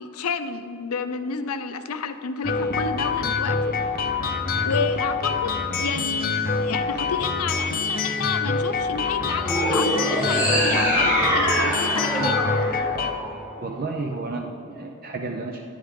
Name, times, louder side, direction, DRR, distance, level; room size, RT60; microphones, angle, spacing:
voice 1, 0.0-3.6 4.6-12.4, left 5 dB, 85° left, 10 dB, 0.6 m, -30 dB
sound 1, 2.4-13.1, left 4 dB, 40° left, 0.6 m, -25 dB
sound 2, 9.4-13.8, equal, 5° right, 1.8 m, -24 dB
voice 2, 13.6-15.6, right 3 dB, 40° right, 2 dB, 0.5 m, -31 dB
10.5 x 10.0 x 3.7 m, 2.8 s
head